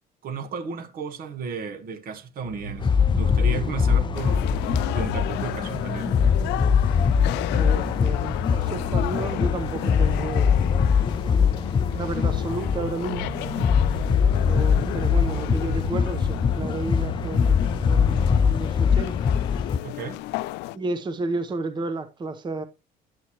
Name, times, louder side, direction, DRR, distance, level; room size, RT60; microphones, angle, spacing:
voice 1, 0.2-4.4 4.8-6.1 19.8-20.4, right 5 dB, 60° right, 1.2 m, -34 dB
sound 1, 2.4-18.6, right 4 dB, 80° right, 1.5 m, -37 dB
sound 2, 2.8-19.8, left 7 dB, 30° left, 0.4 m, -22 dB
sound 3, 4.1-20.8, left 18 dB, 90° left, 0.5 m, -35 dB
voice 2, 7.5-10.5 11.9-13.3 14.4-19.2 20.7-22.6, right 3 dB, 25° right, 0.8 m, -32 dB
9.9 x 8.0 x 2.9 m
cardioid pair, 110°, 17 cm